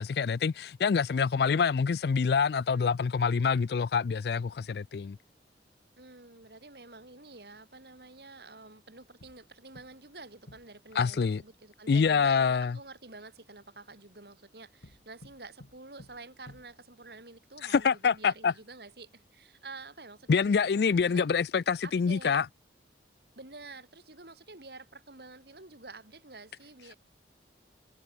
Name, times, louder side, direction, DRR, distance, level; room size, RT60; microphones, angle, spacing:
voice 1, 0.0-5.2 11.0-11.4 11.9-12.8 17.6-18.5 20.3-22.4, left 5 dB, 65° left, 0.4 m, -26 dB
voice 2, 6.0-21.3 21.8-22.4 23.4-27.0, right 3 dB, 65° right, 3.4 m, -49 dB
sound 1, 9.2-10.2 10.5-11.5 14.8-17.1, left 1 dB, 80° left, 2.5 m, -55 dB
head